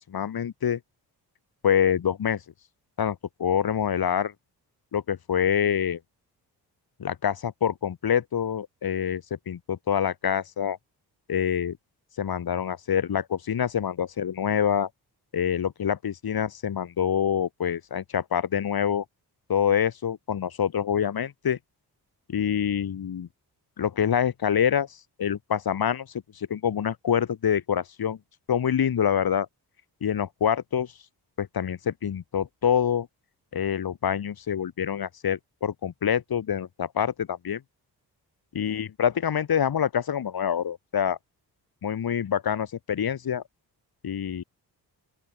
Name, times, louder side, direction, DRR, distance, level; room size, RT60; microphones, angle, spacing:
voice 1, 0.1-0.8 1.6-2.4 3.0-4.3 4.9-6.0 7.0-10.8 11.3-11.8 12.2-14.9 15.3-19.0 19.5-21.6 22.3-23.3 23.8-24.9 25.2-26.1 26.3-28.2 28.5-29.5 30.0-30.9 31.4-33.1 33.5-37.6 38.5-41.2 41.8-43.4 44.0-44.4, left 8 dB, 60° left, 2.6 m, -26 dB
open air
cardioid pair, 70°, 40 cm